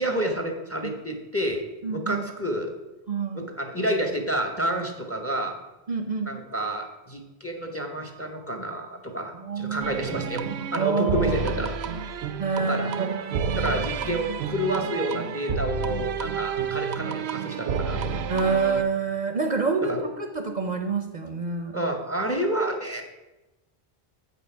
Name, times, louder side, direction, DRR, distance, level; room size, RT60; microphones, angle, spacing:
voice 1, 0.0-1.6 1.9-2.7 3.3-5.6 6.2-10.5 10.7-12.1 12.6-13.1 13.5-18.2 19.8-20.1 21.7-23.0, right 1 dB, 15° left, 4 dB, 0.9 m, -29 dB
voice 2, 1.8-2.2 3.1-3.5 5.9-6.3 9.4-10.0 10.4-11.4 12.4-13.8 14.3-14.4 18.3-21.8, right 5 dB, 45° right, 5 dB, 0.8 m, -27 dB
sound 1, 9.8-18.8, right 6 dB, 80° right, 0.9 m, -30 dB
8.0 x 5.5 x 5.6 m, 1.0 s
omnidirectional pair, 1.1 m